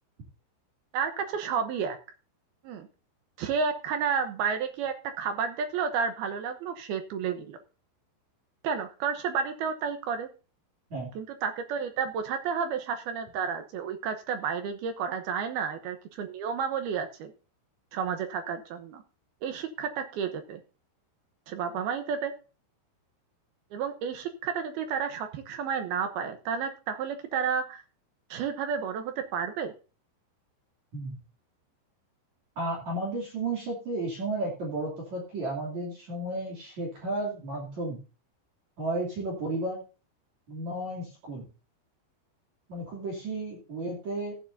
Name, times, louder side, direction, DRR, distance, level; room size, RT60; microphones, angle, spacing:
voice 1, 0.9-2.0 2.6-2.9 3.4-7.6 8.6-10.3 11.2-17.3 17.9-19.0 19.4-20.6 21.5-22.3 23.7-27.8 28.3-29.7, right 6 dB, 70° right, 6 dB, 2.5 m, -31 dB
voice 2, 32.6-38.0 38.8-39.8 40.5-41.5 42.7-44.4, right 2 dB, 40° right, -3 dB, 3.8 m, -33 dB
15.5 x 10.0 x 2.7 m, 0.34 s
omnidirectional pair, 5.4 m